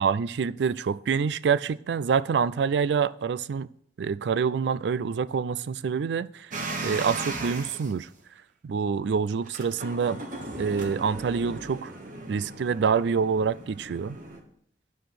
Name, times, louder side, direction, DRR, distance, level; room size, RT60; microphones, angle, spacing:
voice 1, 0.0-3.7 4.0-6.5 6.8-8.1 8.6-10.2 10.6-11.9 12.3-14.2, right 6 dB, 70° right, 0.3 m, -26 dB
sound 1, 6.5-7.9 9.4-14.4, right 2 dB, 45° right, 1.3 m, -37 dB
9.8 x 5.2 x 5.8 m
head